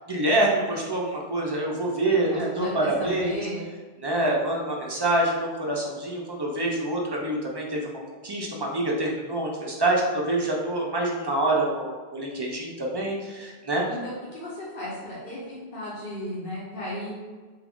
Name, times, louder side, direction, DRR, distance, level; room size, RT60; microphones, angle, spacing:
voice 1, 0.1-3.4 4.0-7.9 8.2-13.8, right 1 dB, 35° right, -2 dB, 0.4 m, -26 dB
voice 2, 2.3-3.7 13.8-17.2, left 1 dB, 55° left, -7 dB, 1.0 m, -35 dB
3.7 x 2.4 x 3.5 m, 1.4 s
omnidirectional pair, 1.1 m